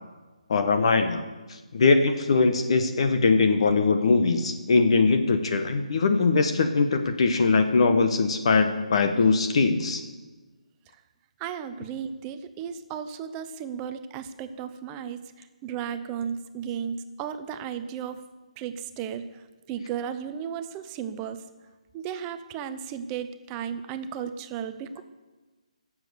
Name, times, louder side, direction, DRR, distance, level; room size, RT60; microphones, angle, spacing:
voice 1, 0.5-1.2 1.7-10.0, left 4 dB, 50° left, 7 dB, 1.1 m, -21 dB
voice 2, 11.4-18.2 18.6-19.4 19.7-21.4 21.9-25.0, right 8 dB, 15° right, 10 dB, 0.6 m, -34 dB
17.0 x 7.4 x 6.8 m, 1.2 s
hypercardioid pair, 160°, 4 cm